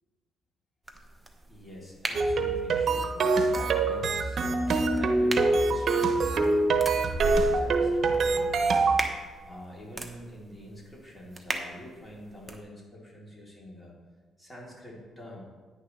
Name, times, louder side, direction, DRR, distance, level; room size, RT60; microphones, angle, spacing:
sound 1, 0.8-12.6, right 2 dB, 10° right, 1.1 m, -39 dB
voice 1, 1.5-8.9 9.4-13.9 14.4-15.4, equal, 20° left, -4 dB, 3.3 m, -46 dB
sound 2, 2.1-9.0, right 3 dB, 55° right, 0.9 m, -25 dB
10.0 x 9.7 x 3.3 m, 1.4 s
cardioid pair, 90°, 0 cm